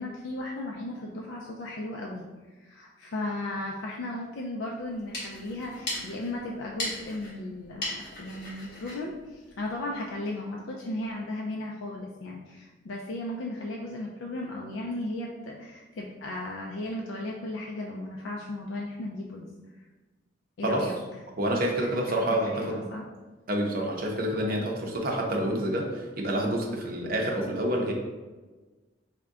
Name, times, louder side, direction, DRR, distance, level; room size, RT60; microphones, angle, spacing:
voice 1, 0.0-2.3 2.6-19.5 20.6-20.9 21.8-22.0 22.5-23.0, left 1 dB, 85° left, -1 dB, 0.4 m, -35 dB
sound 1, 4.8-10.1, left 1 dB, 60° left, 1.3 m, -39 dB
voice 2, 21.4-22.8 23.5-27.9, right 1 dB, 50° right, 0 dB, 0.6 m, -28 dB
3.5 x 2.2 x 3.6 m, 1.2 s
head